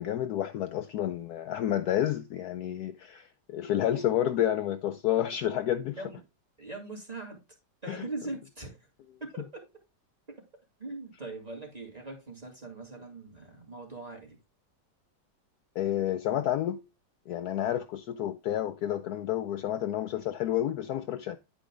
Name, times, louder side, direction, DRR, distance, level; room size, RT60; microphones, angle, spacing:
voice 1, 0.0-6.0 7.9-8.1 15.8-16.9 17.3-21.4, left 11 dB, 70° left, 1.0 m, -30 dB
voice 2, 6.6-7.4 7.8-8.8 9.2-9.7 10.4-10.5 10.8-14.4, right 2 dB, 20° right, 2.8 m, -41 dB
9.9 x 5.1 x 3.8 m
omnidirectional pair, 2.0 m